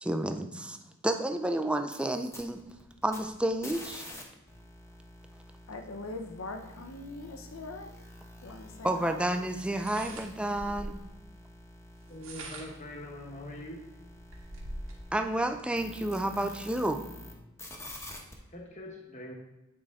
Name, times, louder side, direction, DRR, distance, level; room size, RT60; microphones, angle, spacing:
voice 1, 0.0-0.8 1.0-2.6 3.0-4.0 8.8-11.0 15.1-17.1, right 1 dB, 5° right, 6 dB, 0.4 m, -30 dB
sound 1, 1.8-4.2 4.5-17.3 17.6-18.3, left 1 dB, 15° left, 1.0 m, -48 dB
voice 2, 5.7-7.9 8.4-9.2, left 2 dB, 70° left, 6 dB, 0.7 m, -41 dB
sound 2, 9.7-11.1 12.0-12.9 13.5-13.6 13.9-15.0, right 1 dB, 75° right, 1.7 m, -43 dB
voice 3, 12.1-13.8 18.5-19.3, left 1 dB, 35° left, 0 dB, 1.1 m, -43 dB
8.8 x 4.9 x 3.6 m, 0.99 s
head